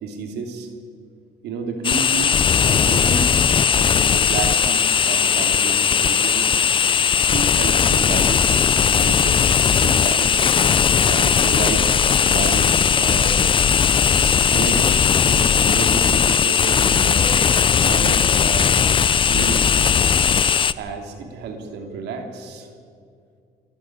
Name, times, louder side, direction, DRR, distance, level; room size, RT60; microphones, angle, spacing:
voice 1, 0.0-0.7 1.4-2.3 2.6-3.4 3.7-6.5 7.3-10.3 11.0-13.4 14.5-15.0 15.3-17.3 17.8-18.8 19.3-19.7 20.8-22.7, right 4 dB, 80° right, 4 dB, 3.2 m, -30 dB
sound 1, 1.8-20.7, left 7 dB, 30° left, 0.5 m, -18 dB
28.0 x 11.5 x 9.1 m, 2.2 s
cardioid pair, 110°, 17 cm